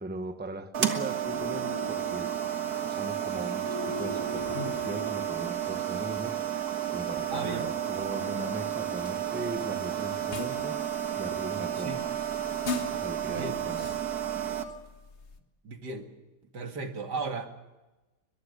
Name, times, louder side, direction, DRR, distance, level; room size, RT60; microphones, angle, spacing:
voice 1, 0.0-2.3 2.8-6.4 6.9-10.8 11.2-12.0 12.9-13.9, right 2 dB, 5° right, 1.0 m, -39 dB
sound 1, 0.7-14.6, right 10 dB, 70° right, 2.1 m, -32 dB
sound 2, 1.2-5.8, left 3 dB, 15° left, 1.3 m, -41 dB
sound 3, 4.2-15.4, left 4 dB, 45° left, 1.6 m, -44 dB
voice 2, 7.3-7.7 11.7-12.0 13.3-13.6 15.6-16.0 16.5-17.5, right 3 dB, 85° right, 2.6 m, -35 dB
22.5 x 22.0 x 6.7 m
omnidirectional pair, 1.7 m